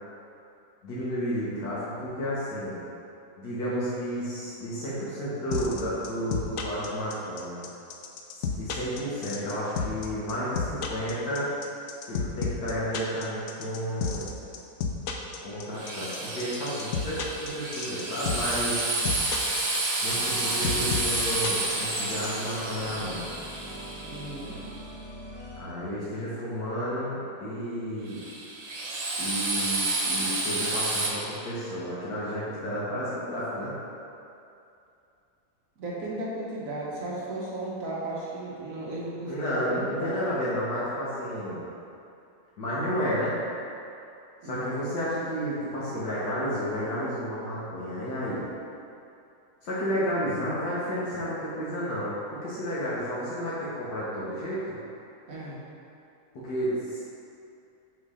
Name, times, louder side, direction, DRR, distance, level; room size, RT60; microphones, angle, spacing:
voice 1, 0.8-2.8 3.4-7.6 8.3-11.5 12.1-14.3 15.4-18.8 20.0-23.3 25.6-28.2 29.2-33.8 39.2-41.6 42.6-43.3 44.4-48.4 49.6-54.7 56.3-57.0, equal, 85° left, -9 dB, 1.7 m, -31 dB
sound 1, 5.5-22.3, left 6 dB, 70° left, 0.8 m, -31 dB
Drill, 15.8-24.7 28.1-31.1, right 2 dB, 80° right, 1.6 m, -30 dB
sound 2, 20.0-25.6, left 1 dB, 35° right, 1.8 m, -42 dB
voice 2, 24.0-24.6 35.8-40.2 44.4-44.9 55.3-55.6, right 2 dB, 60° right, -6 dB, 1.5 m, -35 dB
6.3 x 3.3 x 4.9 m, 2.6 s
omnidirectional pair, 1.7 m